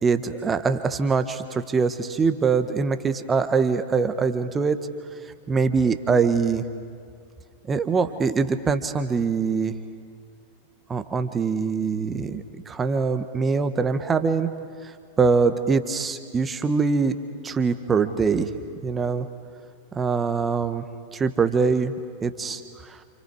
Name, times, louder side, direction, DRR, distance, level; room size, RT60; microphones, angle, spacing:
voice 1, 0.0-4.8 5.5-6.6 7.7-9.7 10.9-14.5 15.2-17.1 17.4-18.5 18.8-19.3 19.9-20.8 21.1-21.9 22.2-22.6, right 5 dB, 20° right, 9 dB, 1.4 m, -23 dB
29.0 x 29.0 x 4.9 m, 2.2 s
figure-of-eight pair, 90°, 0 cm